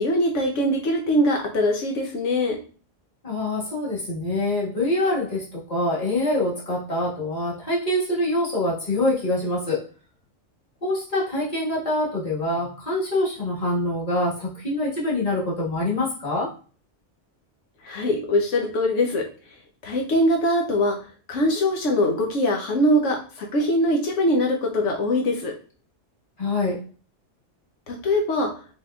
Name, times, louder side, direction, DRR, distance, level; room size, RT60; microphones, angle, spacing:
voice 1, 0.0-2.6 17.8-19.2 19.8-21.0 21.3-25.5 27.9-28.5, left 1 dB, 80° left, 1 dB, 1.1 m, -22 dB
voice 2, 3.2-9.8 10.8-16.5 26.4-26.8, left 1 dB, 30° left, -7 dB, 1.6 m, -25 dB
4.3 x 3.6 x 2.3 m, 0.38 s
omnidirectional pair, 1.2 m